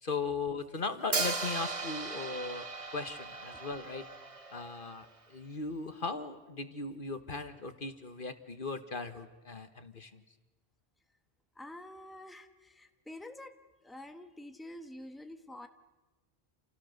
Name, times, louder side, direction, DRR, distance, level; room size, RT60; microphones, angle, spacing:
voice 1, 0.0-2.7 2.9-4.0 4.5-10.2, left 4 dB, 55° left, 9 dB, 1.5 m, -38 dB
Hi-hat, 1.1-5.1, right 3 dB, 30° right, 1.3 m, -37 dB
voice 2, 11.5-13.6 13.8-15.7, left 1 dB, ahead, 6 dB, 1.4 m, -47 dB
29.0 x 28.5 x 6.6 m, 1.1 s
omnidirectional pair, 1.1 m